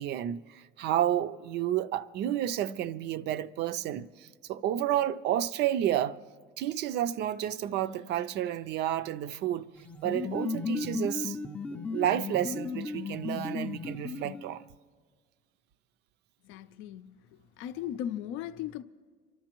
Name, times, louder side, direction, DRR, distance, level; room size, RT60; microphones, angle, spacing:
voice 1, 0.0-6.2 6.6-9.7 10.0-11.4 11.7-14.6, right 11 dB, 60° right, 0.5 m, -31 dB
sound 1, 9.8-14.7, left 4 dB, 5° left, 0.4 m, -35 dB
voice 2, 16.4-17.2 17.6-18.8, left 10 dB, 85° left, 0.5 m, -37 dB
28.0 x 12.5 x 3.0 m
cardioid pair, 150°, 20 cm